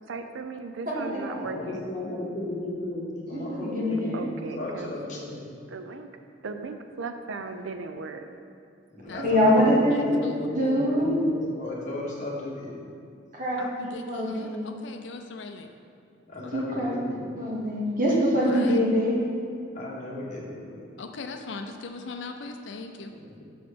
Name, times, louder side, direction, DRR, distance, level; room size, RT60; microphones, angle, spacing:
voice 1, 0.1-1.8 4.1-4.9 5.7-6.1 6.4-8.3, right 4 dB, 75° right, 7 dB, 0.5 m, -37 dB
voice 2, 0.9-1.5 3.3-4.3 9.2-10.1 10.6-11.1 13.3-14.8 16.5-16.9 17.4-19.2, equal, 45° right, -6 dB, 1.8 m, -24 dB
voice 3, 1.4-4.2 4.5-5.4 8.9-12.8 16.3-17.3 19.7-20.7 23.1-23.4, left 1 dB, 40° left, -5 dB, 1.5 m, -35 dB
voice 4, 9.1-9.6 9.9-10.9 13.6-15.7 16.4-16.5 18.0-18.8 21.0-23.1, left 3 dB, 65° left, 5 dB, 0.5 m, -40 dB
6.7 x 4.2 x 6.6 m, 2.4 s
head